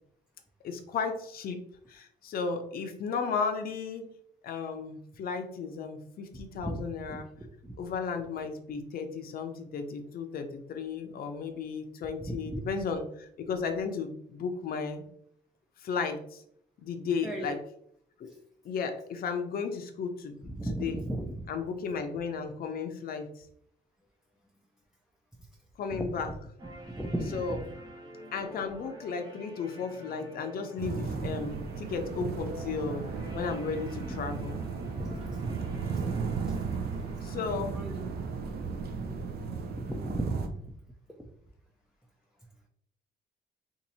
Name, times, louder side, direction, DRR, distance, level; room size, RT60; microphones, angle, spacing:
voice 1, 0.6-1.6 1.9-4.0 4.4-7.3 7.8-15.0 15.8-16.4 16.8-17.6 18.2-18.3 18.6-21.0 21.5-23.5 25.8-26.3 27.3-27.6 28.3-33.0 33.3-34.6 37.2-37.7, left 5 dB, 55° left, 6 dB, 0.6 m, -34 dB
voice 2, 7.1-7.7 12.3-12.4 17.2-17.5 20.5-21.4 25.9-26.1 26.9-27.6 34.8-35.6 37.7-38.0 39.7-40.8 41.1-41.2, right 1 dB, ahead, 0 dB, 0.4 m, -36 dB
sound 1, 26.6-38.6, right 1 dB, 20° right, 0.9 m, -49 dB
sound 2, 30.8-40.5, right 5 dB, 55° right, 0.5 m, -35 dB
2.7 x 2.6 x 4.1 m, 0.69 s
cardioid pair, 100°, 19 cm